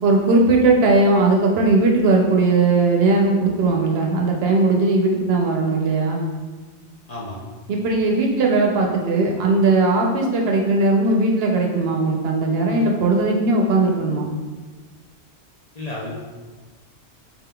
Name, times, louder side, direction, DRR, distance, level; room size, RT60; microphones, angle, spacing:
voice 1, 0.0-6.2 7.7-14.3, right 3 dB, 70° right, 0 dB, 0.8 m, -18 dB
voice 2, 7.1-7.4 15.7-16.1, left 2 dB, 45° left, -5 dB, 0.6 m, -31 dB
4.1 x 3.7 x 2.2 m, 1.3 s
omnidirectional pair, 1.2 m